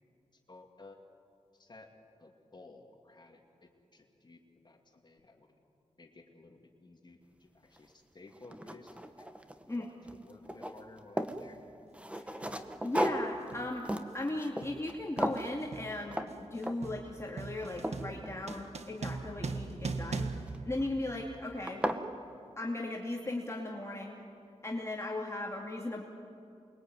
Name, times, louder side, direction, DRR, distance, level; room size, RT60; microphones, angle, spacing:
voice 1, 0.3-1.0 1.5-1.9 2.2-5.6 6.0-9.3 9.6-11.6, left 3 dB, 40° left, 2 dB, 2.6 m, -56 dB
sound 1, 7.8-7.9 8.3-9.8 10.0-11.4 11.9-14.9 15.2-15.5 16.1-16.3 16.6-17.0 17.4-19.0 20.5-20.9 21.3-21.4 21.7-22.1, right 1 dB, 10° right, 1.4 m, -36 dB
sound 2, 11.3-11.5 12.4-12.7 13.0-21.5, right 4 dB, 70° right, 1.6 m, -41 dB
voice 2, 12.8-13.9 14.1-21.8 22.6-24.2 24.6-26.0, left 2 dB, 25° left, -2 dB, 2.6 m, -37 dB
28.5 x 22.5 x 9.3 m, 2.5 s
wide cardioid pair, 90°, 12 cm